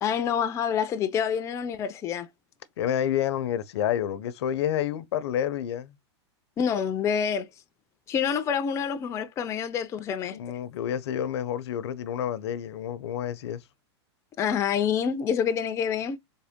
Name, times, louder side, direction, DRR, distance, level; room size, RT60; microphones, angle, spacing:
voice 1, 0.0-2.3 6.6-7.5 8.1-10.4 14.4-16.2, left 7 dB, 20° left, 0.4 m, -27 dB
voice 2, 2.8-6.0 10.3-13.6, left 10 dB, 70° left, 0.6 m, -29 dB
3.7 x 2.0 x 3.5 m
hypercardioid pair, 135°, 14 cm